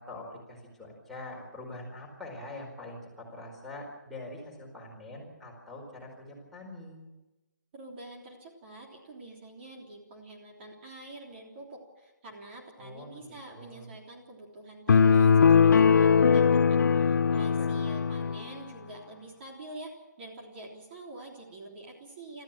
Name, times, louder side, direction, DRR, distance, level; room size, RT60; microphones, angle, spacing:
voice 1, 0.0-7.0 12.8-13.9 17.0-17.8, left 2 dB, ahead, -5 dB, 4.5 m, -44 dB
voice 2, 7.7-22.4, right 2 dB, 35° right, 0 dB, 3.5 m, -46 dB
sound 1, 14.9-18.4, left 6 dB, 70° left, 0.6 m, -21 dB
26.0 x 14.5 x 7.5 m, 1.1 s
hypercardioid pair, 160°, 10 cm